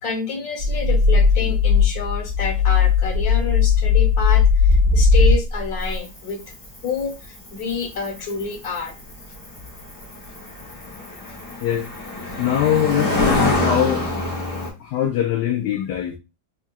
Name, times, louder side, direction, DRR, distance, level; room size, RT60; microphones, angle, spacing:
voice 1, 0.0-4.4 4.7-6.4 6.8-8.9, left 5 dB, 60° left, 1.3 m, -28 dB
sound 1, 0.6-6.0, left 5 dB, 45° right, 1.5 m, -17 dB
Cricket, 5.8-14.7, left 1 dB, 25° left, 0.8 m, -27 dB
voice 2, 12.4-14.1 14.8-16.2, left 11 dB, 75° left, 1.1 m, -22 dB
3.6 x 3.3 x 2.3 m
omnidirectional pair, 2.0 m